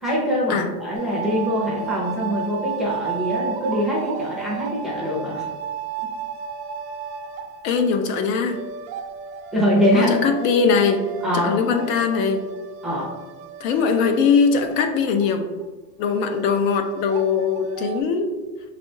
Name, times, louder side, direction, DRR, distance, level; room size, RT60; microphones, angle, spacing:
voice 1, 0.0-5.4 9.5-10.1 11.2-11.6 12.8-13.1, equal, ahead, -7 dB, 0.5 m, -23 dB
sound 1, 0.9-15.3 15.6-15.7 16.0-18.0, right 6 dB, 50° right, 0.5 m, -33 dB
voice 2, 7.6-8.6 9.9-11.0 11.3-12.4 13.6-15.5 16.0-18.3, left 5 dB, 60° left, 6 dB, 0.6 m, -21 dB
5.6 x 3.3 x 2.6 m, 1.2 s
supercardioid pair, 170°, 44 cm